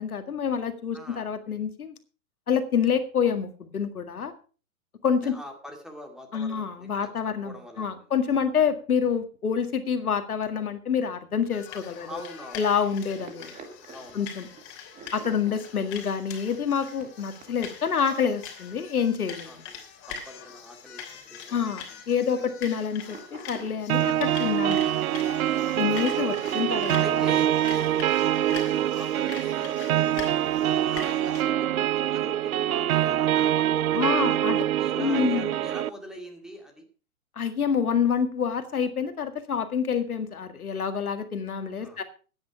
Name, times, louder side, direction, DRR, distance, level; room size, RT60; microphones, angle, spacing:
voice 1, 0.0-1.9 2.5-4.3 5.0-5.4 6.3-12.2 12.6-13.5 14.1-14.5 15.1-19.6 21.5-25.0 25.8-27.2 33.9-34.6 35.0-35.5 37.4-42.0, left 7 dB, 80° left, 8 dB, 2.0 m, -27 dB
voice 2, 0.9-1.3 5.2-7.1 7.4-8.1 12.1-12.7 13.9-14.2 15.7-15.9 19.5-22.0 25.6-25.8 27.0-30.2 30.9-36.9 41.8-42.0, equal, ahead, 3 dB, 2.2 m, -43 dB
sound 1, 11.5-31.4, left 7 dB, 30° left, 3.1 m, -43 dB
sound 2, 13.0-18.0 18.3-18.5 19.3-19.4 19.8-19.9 20.3-20.8 21.1-21.2 21.4-21.6 22.0-22.4 22.9-26.7, right 5 dB, 15° right, 1.8 m, -47 dB
sound 3, 23.9-35.9, right 12 dB, 75° right, 0.6 m, -25 dB
13.0 x 9.4 x 4.8 m, 0.36 s
hypercardioid pair, 130°, 43 cm